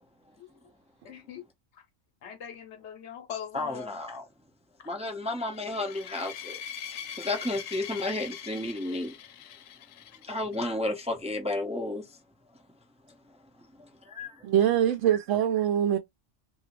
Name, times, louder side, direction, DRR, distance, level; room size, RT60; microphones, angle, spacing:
voice 1, 1.0-1.4 1.7-1.8 2.2-4.0 4.8-4.9, left 8 dB, 65° left, 1.0 m, -41 dB
voice 2, 3.5-4.2 4.9-9.1 10.2-12.0 13.8-14.4, left 2 dB, 10° right, 0.3 m, -32 dB
sound 1, 5.4-10.7, left 9 dB, 85° left, 1.0 m, -42 dB
voice 3, 14.4-16.0, right 10 dB, 75° right, 0.9 m, -23 dB
2.9 x 2.6 x 3.0 m
omnidirectional pair, 1.3 m